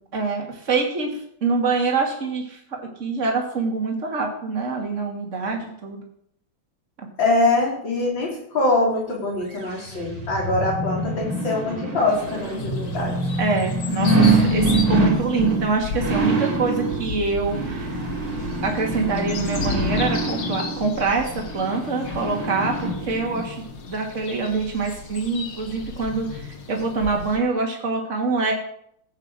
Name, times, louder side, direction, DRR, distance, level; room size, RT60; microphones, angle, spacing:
voice 1, 0.1-1.1 1.4-2.6 3.0-6.0 13.4-17.9 18.6-26.4 26.7-28.5, right 4 dB, 35° right, 1 dB, 2.9 m, -25 dB
voice 2, 7.2-13.2, left 2 dB, 65° left, -2 dB, 5.6 m, -23 dB
sound 1, 9.5-23.4 23.9-24.0, right 2 dB, 85° right, 4.5 m, -25 dB
St Albans Noise and Birds, 12.1-27.4, left 4 dB, 80° left, 2.7 m, -35 dB
15.5 x 8.9 x 7.7 m, 0.68 s
omnidirectional pair, 2.3 m